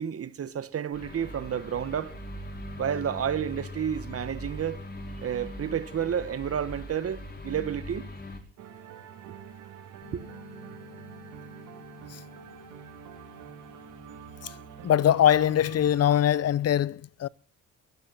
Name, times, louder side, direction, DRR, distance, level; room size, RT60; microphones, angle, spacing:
voice 1, 0.0-2.1 2.8-4.8 5.2-8.1 10.1-10.3, right 8 dB, 50° right, 1.5 m, -31 dB
sound 1, 0.9-8.4, equal, 35° left, 5.5 m, -40 dB
sound 2, 8.6-16.1, right 9 dB, 85° right, 2.8 m, -46 dB
sound 3, 10.0-15.0, left 6 dB, 85° left, 7.5 m, -51 dB
voice 2, 14.8-17.3, left 10 dB, 55° left, 0.7 m, -22 dB
23.5 x 14.0 x 4.2 m
cardioid pair, 90°, 30 cm